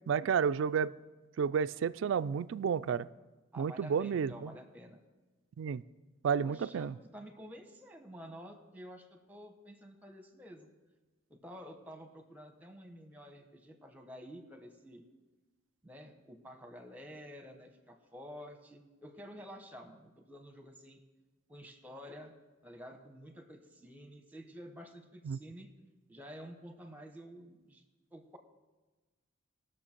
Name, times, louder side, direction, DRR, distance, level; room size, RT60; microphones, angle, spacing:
voice 1, 0.1-0.9 1.4-3.1 3.6-4.5 5.6-5.8 6.2-7.0 25.2-25.4, right 7 dB, 65° right, 16 dB, 0.3 m, -31 dB
voice 2, 3.5-5.0 6.4-10.7 11.3-15.0 15.8-21.0 21.5-22.3 22.6-25.7 26.1-27.8 28.1-28.4, equal, 10° right, 5 dB, 1.0 m, -50 dB
19.5 x 6.5 x 4.4 m, 1.2 s
head